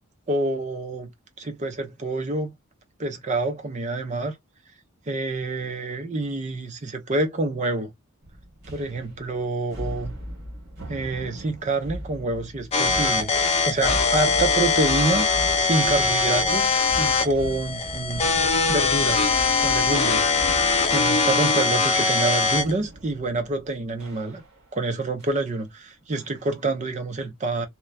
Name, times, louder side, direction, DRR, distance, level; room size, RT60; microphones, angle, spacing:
voice 1, 0.3-1.1 1.4-2.6 3.0-4.4 5.1-7.9 8.7-10.1 10.9-13.3 13.6-15.3 15.6-16.7 17.0-18.2 18.7-19.3 19.6-20.3 20.9-24.4 24.7-27.7, right 2 dB, 30° right, 0.5 m, -27 dB
sound 1, 8.2-24.8 25.2-25.5 26.1-26.6, equal, 50° right, 1.2 m, -38 dB
sound 2, 12.7-22.7, left 4 dB, 30° left, 0.5 m, -22 dB
2.9 x 2.1 x 2.2 m
head